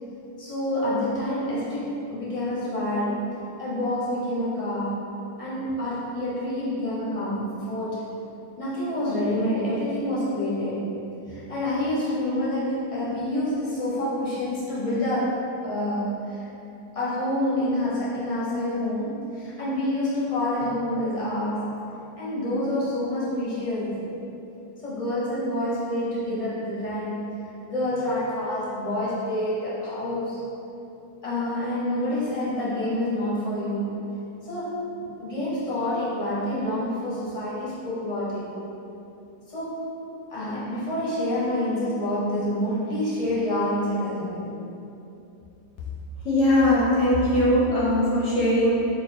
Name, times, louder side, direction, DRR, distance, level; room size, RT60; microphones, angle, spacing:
voice 1, 0.4-5.1 5.4-8.1 8.6-10.9 11.3-16.5 16.9-21.9 22.2-24.1 24.8-30.4 31.2-34.0 34.4-38.5 39.5-39.9 40.3-44.5, left 1 dB, 35° left, -9 dB, 0.6 m, -27 dB
voice 2, 46.2-48.7, left 1 dB, 65° left, -6 dB, 0.8 m, -20 dB
3.2 x 2.2 x 4.2 m, 2.8 s
omnidirectional pair, 1.6 m